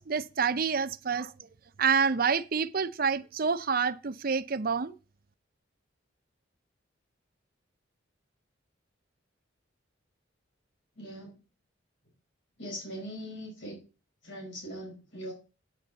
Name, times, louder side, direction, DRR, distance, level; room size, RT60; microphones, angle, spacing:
voice 1, 0.0-1.5 1.8-5.0, right 6 dB, 50° right, 0.6 m, -28 dB
voice 2, 11.0-11.4 12.6-13.8 14.2-15.3, equal, 70° left, 5.0 m, -41 dB
9.1 x 8.9 x 4.0 m
head